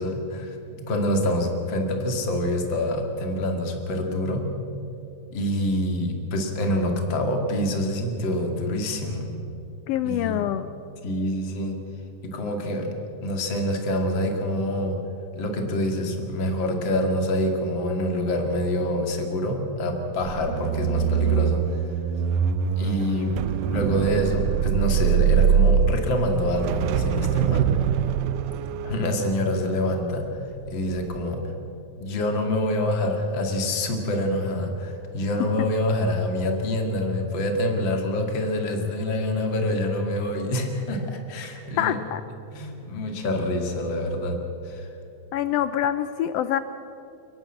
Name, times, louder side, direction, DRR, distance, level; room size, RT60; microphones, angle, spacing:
voice 1, 0.0-4.5 5.3-9.3 10.0-10.5 11.0-11.7 12.2-12.9 13.2-15.0 15.4-21.6 22.8-27.6 28.8-30.2 30.7-31.5 32.0-42.0 42.5-44.4 44.6-44.9, left 1 dB, 40° left, 3 dB, 2.7 m, -26 dB
voice 2, 9.9-10.7 41.8-42.2 45.3-46.6, left 11 dB, 90° left, 12 dB, 1.4 m, -25 dB
sound 1, 20.2-30.5 30.9-31.2, right 7 dB, 90° right, 2.3 m, -23 dB
29.0 x 12.0 x 7.8 m, 2.8 s
omnidirectional pair, 3.5 m